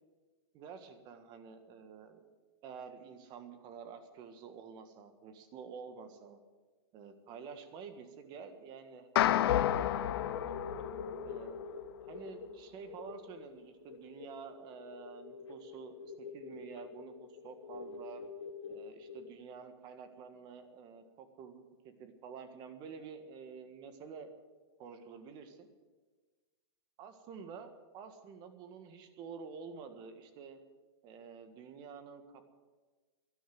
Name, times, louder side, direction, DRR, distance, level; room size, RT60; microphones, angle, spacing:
voice 1, 0.5-2.3 2.6-6.4 6.9-10.5 11.2-11.6 12.0-18.2 18.7-24.3 24.8-25.7 27.0-30.6 31.0-32.5, right 6 dB, 30° right, 8 dB, 1.6 m, -49 dB
sound 1, 9.2-11.6, left 12 dB, 65° left, 0.9 m, -30 dB
sound 2, 10.0-19.3, left 5 dB, 85° left, 1.8 m, -47 dB
12.5 x 11.5 x 9.3 m, 1.4 s
supercardioid pair, 155°, 14 cm